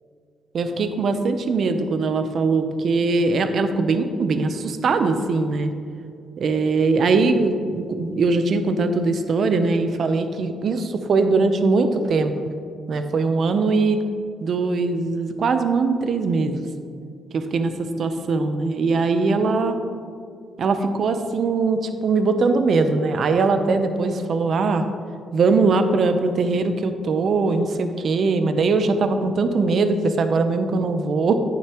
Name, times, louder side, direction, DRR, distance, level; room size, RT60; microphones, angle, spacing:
voice 1, 0.5-5.7 6.4-12.3 12.9-14.0 14.4-16.7 17.3-19.8 20.6-24.8 25.3-31.3, right 3 dB, 55° right, 8 dB, 0.8 m, -21 dB
10.5 x 9.1 x 3.1 m, 2.3 s
cardioid pair, 90°, 0 cm